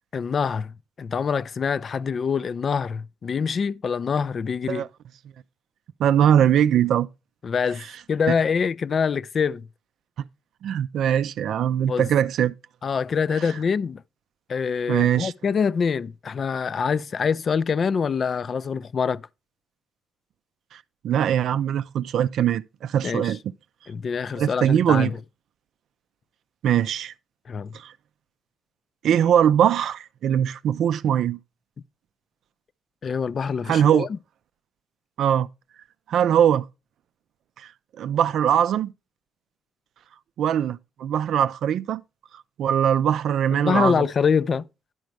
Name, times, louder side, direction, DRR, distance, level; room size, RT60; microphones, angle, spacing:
voice 1, 0.1-4.8 7.4-7.8 8.1-9.7 11.9-12.1 12.8-14.0 14.5-19.2 23.0-23.3 23.9-25.2 27.5-27.7 33.0-34.2 43.6-44.6, left 6 dB, 45° left, 0.3 m, -25 dB
voice 2, 6.0-7.1 10.6-12.5 14.9-15.3 20.7-23.4 24.4-25.1 26.6-27.1 27.7-27.9 29.0-31.4 33.7-34.1 35.2-35.5 36.1-36.7 37.6-37.7 38.0-38.9 40.4-42.0 42.6-44.1, right 9 dB, 75° right, 0.4 m, -21 dB
11.0 x 5.2 x 4.5 m
cardioid pair, 115°, 0 cm